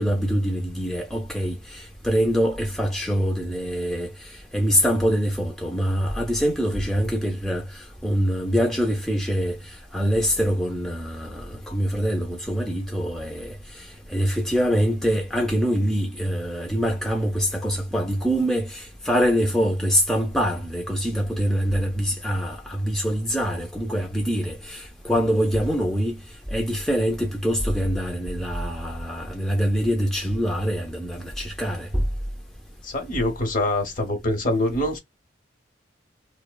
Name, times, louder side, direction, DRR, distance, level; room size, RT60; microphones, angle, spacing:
voice 1, 0.0-26.2 26.5-32.0, equal, 5° left, 0.4 m, -24 dB
voice 2, 32.8-35.0, left 1 dB, 45° left, 0.8 m, -24 dB
2.7 x 2.0 x 2.2 m
head